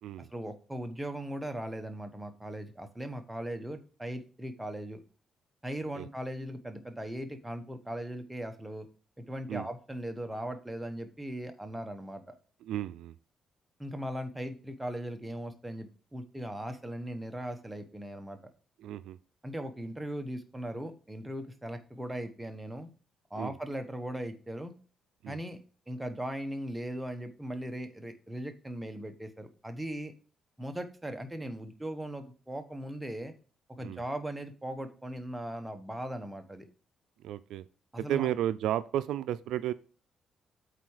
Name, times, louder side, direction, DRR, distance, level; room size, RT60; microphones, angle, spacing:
voice 1, 0.2-5.0 5.6-8.9 9.2-12.4 13.8-18.4 19.4-22.9 23.3-24.7 25.3-25.6 25.9-30.1 30.6-33.3 33.7-36.7 37.9-38.3, right 1 dB, 10° right, 6 dB, 1.1 m, -39 dB
voice 2, 12.6-13.1 18.8-19.2 23.3-23.6 25.2-25.4 33.8-34.0 37.2-37.7 38.0-39.7, right 12 dB, 80° right, 14 dB, 0.3 m, -33 dB
8.3 x 4.1 x 4.8 m, 0.39 s
cardioid pair, 90°, 0 cm